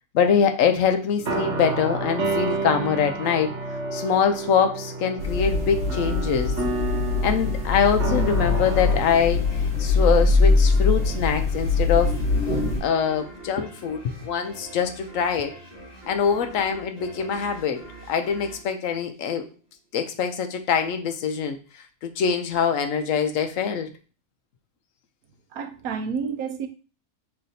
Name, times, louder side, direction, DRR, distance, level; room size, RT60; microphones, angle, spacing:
voice 1, 0.1-3.5 3.9-6.5 7.2-9.5 9.8-12.2 12.8-15.5 16.1-19.5 19.9-21.6 22.0-23.9, left 7 dB, 70° left, 7 dB, 0.9 m, -23 dB
sound 1, 1.2-9.7, right 3 dB, 55° right, 1.1 m, -30 dB
sound 2, 5.2-12.8, left 3 dB, 45° left, 1.3 m, -22 dB
sound 3, 8.4-19.7, right 1 dB, 30° left, 2.0 m, -45 dB
voice 2, 25.5-26.7, right 6 dB, 80° right, 8 dB, 1.1 m, -29 dB
5.7 x 3.3 x 2.7 m, 0.36 s
omnidirectional pair, 1.5 m